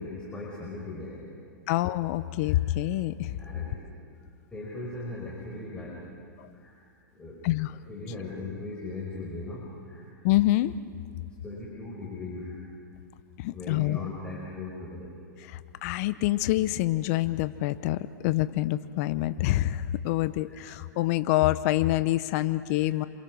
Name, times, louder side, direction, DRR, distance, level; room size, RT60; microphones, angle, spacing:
voice 1, 0.0-1.4 2.4-2.6 3.4-3.8 4.5-6.1 6.5-6.7 7.1-7.4 7.9-10.1 11.4-12.6 13.5-15.2 20.5-20.6 22.7-22.8, left 3 dB, 10° left, -5 dB, 5.1 m, -39 dB
voice 2, 1.7-3.4 6.4-6.5 7.4-7.7 10.2-10.7 13.4-14.1 15.5-23.0, left 16 dB, 50° left, 13 dB, 0.9 m, -26 dB
28.0 x 26.5 x 6.4 m, 2.2 s
hypercardioid pair, 130°, 11 cm